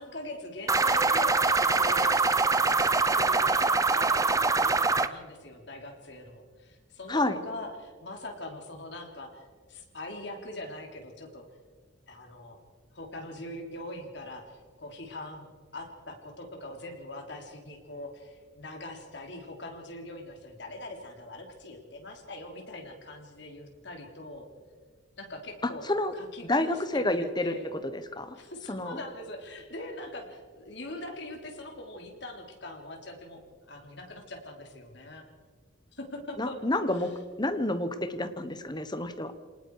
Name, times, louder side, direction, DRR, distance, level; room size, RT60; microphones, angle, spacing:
voice 1, 0.0-2.2 2.6-11.4 12.1-12.6 12.9-15.5 15.7-24.5 25.2-25.8 26.1-27.7 28.3-35.2 35.9-36.6 36.9-37.1, left 1 dB, 60° left, 3 dB, 3.5 m, -42 dB
sound 1, 0.7-5.1, right 3 dB, 15° right, 0.6 m, -24 dB
voice 2, 7.1-7.4 25.9-26.1 26.5-27.5 27.9-28.4 28.7-29.0 36.4-37.1 37.4-39.3, left 1 dB, 20° left, 9 dB, 1.2 m, -29 dB
28.0 x 19.0 x 4.8 m, 1.6 s
head